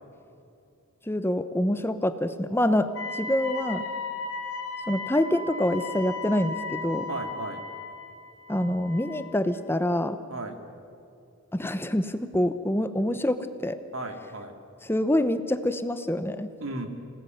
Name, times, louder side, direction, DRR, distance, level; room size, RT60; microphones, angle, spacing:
voice 1, 1.1-3.8 4.9-7.1 8.5-10.2 11.5-13.8 14.8-16.5, left 1 dB, 10° left, 11 dB, 0.9 m, -26 dB
Wind instrument woodwind instrument, 2.9-9.4, left 3 dB, 90° left, 2.6 m, -36 dB
voice 2, 7.1-7.7 10.3-10.6 13.9-14.6 16.6-16.9, right 2 dB, 85° right, 6 dB, 2.7 m, -35 dB
27.0 x 18.5 x 9.3 m, 2.6 s
head